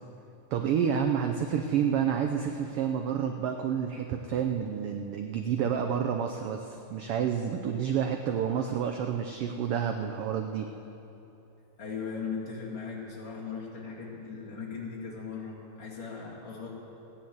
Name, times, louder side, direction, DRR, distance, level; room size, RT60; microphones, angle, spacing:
voice 1, 0.5-10.7, right 8 dB, 80° right, 5 dB, 1.3 m, -29 dB
voice 2, 11.8-16.7, left 5 dB, 40° left, -5 dB, 3.1 m, -38 dB
16.0 x 10.0 x 7.9 m, 2.9 s
omnidirectional pair, 3.4 m